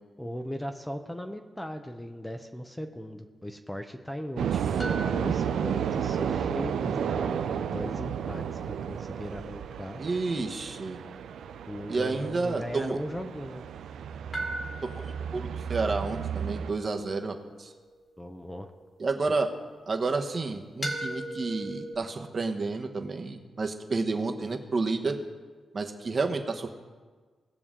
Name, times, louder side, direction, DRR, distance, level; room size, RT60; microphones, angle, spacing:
voice 1, 0.2-10.0 11.7-13.6 18.2-18.7 19.3-19.4, equal, 10° left, 5 dB, 0.7 m, -38 dB
sound 1, 4.4-16.7, right 8 dB, 90° right, 0.4 m, -32 dB
sound 2, 4.8-13.7 14.3-19.4 20.8-21.9, equal, 30° left, 2.0 m, -42 dB
voice 2, 10.0-11.0 11.9-13.0 14.9-17.7 19.0-19.5 19.9-25.2 25.7-26.7, right 3 dB, 40° right, 4 dB, 1.1 m, -30 dB
19.0 x 6.9 x 3.7 m, 1.4 s
cardioid pair, 105°, 0 cm